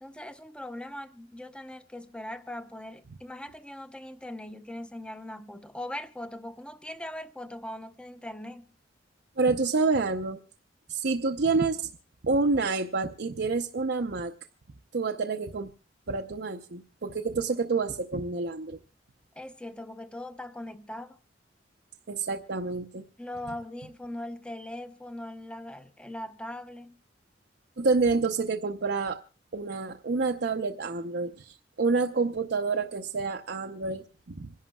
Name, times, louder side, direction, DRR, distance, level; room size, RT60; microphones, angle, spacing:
voice 1, 0.0-8.7 19.3-21.2 23.2-27.0, left 1 dB, 5° left, 0.8 m, -40 dB
voice 2, 9.4-10.4 10.9-11.9 12.2-14.3 14.9-15.7 16.1-18.8 22.1-23.0 27.8-29.2 29.5-34.5, right 4 dB, 60° right, 0.7 m, -28 dB
26.5 x 11.0 x 2.3 m
head